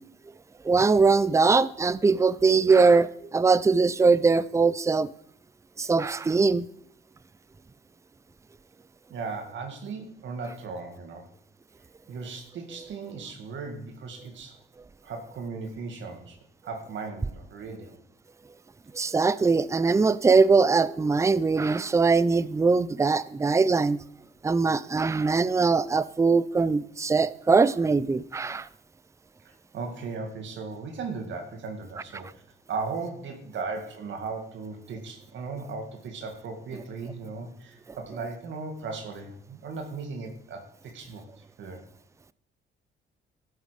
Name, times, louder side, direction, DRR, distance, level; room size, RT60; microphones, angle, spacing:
voice 1, 0.6-5.1 5.8-6.6 18.9-24.0 24.4-28.7, right 4 dB, 15° right, 0.5 m, -21 dB
voice 2, 9.1-11.3 12.1-14.6 15.0-16.4 16.6-18.0 29.4-32.4 32.7-41.8, right 4 dB, 70° right, 1.9 m, -37 dB
12.0 x 8.4 x 5.1 m
cardioid pair, 90°, 20 cm